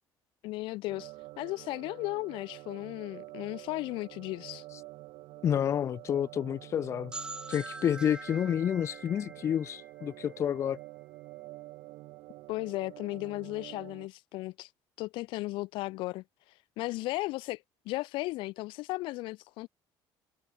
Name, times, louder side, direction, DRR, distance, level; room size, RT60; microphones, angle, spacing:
voice 1, 0.4-4.6 12.5-14.7 15.0-16.2 16.8-19.7, left 20 dB, 75° left, 1.4 m, -35 dB
sound 1, 0.9-14.1, right 20 dB, 75° right, 3.5 m, -48 dB
voice 2, 5.4-7.1 7.5-10.8, left 9 dB, 35° left, 0.7 m, -29 dB
sound 2, 7.1-10.8, right 2 dB, 10° right, 2.2 m, -44 dB
cardioid pair, 165°, 9 cm